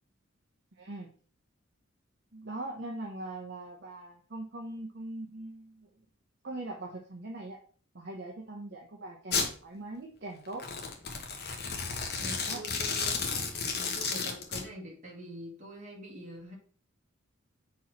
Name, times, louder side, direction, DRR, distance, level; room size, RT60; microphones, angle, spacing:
voice 1, 0.8-1.1 2.3-5.9 6.4-7.6 7.9-10.6 12.5-12.6, right 2 dB, 50° right, 0 dB, 1.0 m, -41 dB
Domestic sounds home sounds, 9.3-9.5 10.5-14.6, left 5 dB, 50° left, 1.2 m, -32 dB
voice 2, 12.2-13.4 13.7-16.6, equal, 35° right, -1 dB, 2.1 m, -45 dB
4.7 x 4.3 x 5.8 m, 0.43 s
head